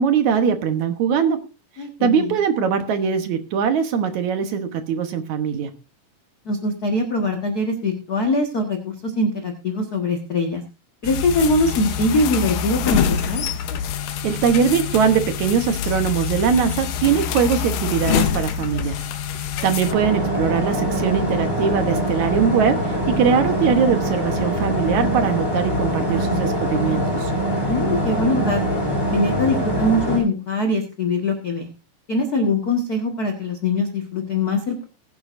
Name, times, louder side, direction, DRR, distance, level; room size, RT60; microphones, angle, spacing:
voice 1, 0.0-1.4 2.0-5.7 14.2-19.0 19.6-27.3, right 7 dB, 65° right, 8 dB, 2.1 m, -21 dB
voice 2, 1.8-2.4 6.4-10.6 11.0-13.4 27.6-28.8 29.1-31.7 32.1-34.8, left 2 dB, 50° left, 2 dB, 1.1 m, -22 dB
sound 1, 11.0-19.9, left 8 dB, 75° left, 2.5 m, -25 dB
sound 2, 19.8-30.2, equal, 20° left, 5.9 m, -23 dB
20.0 x 9.9 x 2.6 m, 0.29 s
omnidirectional pair, 4.2 m